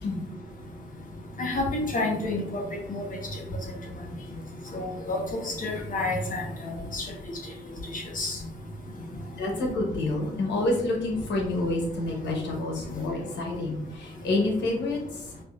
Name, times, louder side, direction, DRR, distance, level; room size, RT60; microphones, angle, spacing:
voice 1, 1.4-2.6 2.9-3.0 4.7-5.2 5.6-7.0 7.9-8.4, left 2 dB, 50° left, 1 dB, 1.2 m, -29 dB
voice 2, 9.4-15.2, left 2 dB, 85° left, 1 dB, 1.0 m, -28 dB
5.1 x 2.6 x 2.5 m, 0.77 s
cardioid pair, 65°, 18 cm